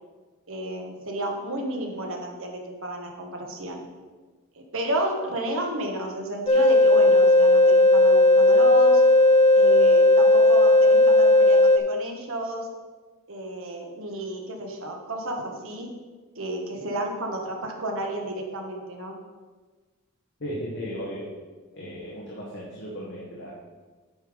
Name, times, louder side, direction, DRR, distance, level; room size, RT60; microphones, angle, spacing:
voice 1, 0.5-3.8 4.7-9.0 9.5-12.7 13.3-15.9 16.3-19.1, right 1 dB, 65° right, 2 dB, 1.4 m, -31 dB
sound 1, 6.5-11.8, left 2 dB, 25° left, 0.6 m, -16 dB
voice 2, 20.4-21.3 21.7-23.6, equal, 55° left, -6 dB, 1.7 m, -35 dB
8.9 x 5.4 x 5.2 m, 1.4 s
head